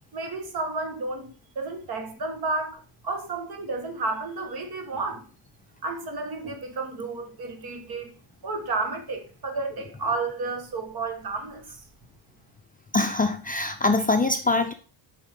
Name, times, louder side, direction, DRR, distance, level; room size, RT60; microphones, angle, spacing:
voice 1, 0.1-5.3 5.8-8.1 8.4-11.8, right 3 dB, 50° right, 1.5 m, -32 dB
voice 2, 12.9-14.7, left 3 dB, 20° left, 0.5 m, -23 dB
7.1 x 5.0 x 3.6 m
cardioid pair, 120°, 47 cm